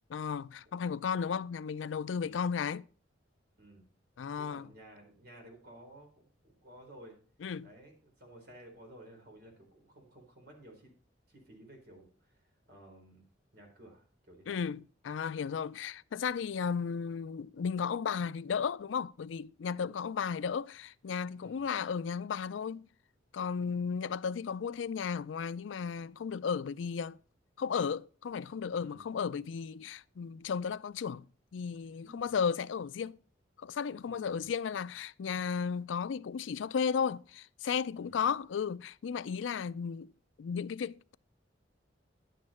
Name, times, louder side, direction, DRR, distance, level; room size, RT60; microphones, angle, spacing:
voice 1, 0.1-2.8 4.2-4.7 7.4-7.7 14.5-22.9 23.3-27.2 27.6-31.3 31.5-33.2 33.6-40.1 40.4-41.1, left 6 dB, 90° left, 0.4 m, -34 dB
voice 2, 4.2-7.2 7.6-10.9 11.3-13.3 13.5-14.6 21.4-21.6 23.6-23.8 28.8-29.0 32.0-32.3 34.0-34.5 37.9-38.3, right 1 dB, 55° right, 4.0 m, -55 dB
10.5 x 8.4 x 4.3 m
head